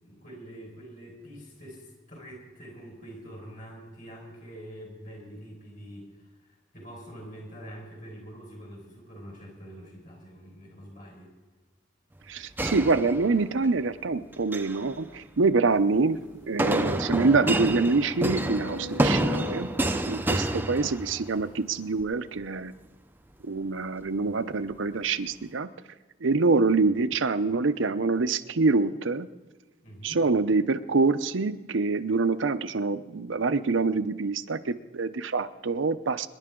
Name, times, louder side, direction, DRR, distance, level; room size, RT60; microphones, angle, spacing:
voice 1, 0.0-11.3 29.8-30.2, equal, 45° left, -1 dB, 5.1 m, -45 dB
voice 2, 12.3-16.2 16.5-19.7 20.1-22.7 23.4-25.7 26.2-29.3 30.0-36.3, right 3 dB, 85° right, 10 dB, 0.7 m, -25 dB
sound 1, 12.6-13.7 14.3-14.8 16.6-21.4, right 1 dB, 10° right, 0.5 m, -28 dB
sound 2, 16.0-16.1 16.5-16.6 17.1-21.3 22.0-22.1, left 1 dB, 75° left, 1.0 m, -43 dB
26.0 x 10.5 x 3.8 m, 1.2 s
head